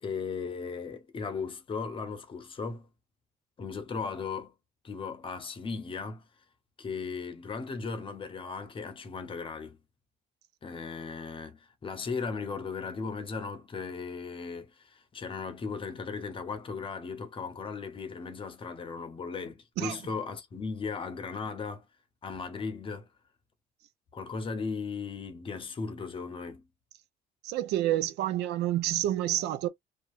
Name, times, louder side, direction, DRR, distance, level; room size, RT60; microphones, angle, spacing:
voice 1, 0.0-2.9 3.6-4.5 4.8-6.2 6.8-9.8 10.6-21.9 22.2-23.1 24.1-26.7, left 5 dB, 30° left, 0.7 m, -37 dB
voice 2, 27.4-29.7, right 13 dB, 80° right, 0.5 m, -28 dB
2.8 x 2.4 x 2.4 m
cardioid pair, 110°, 17 cm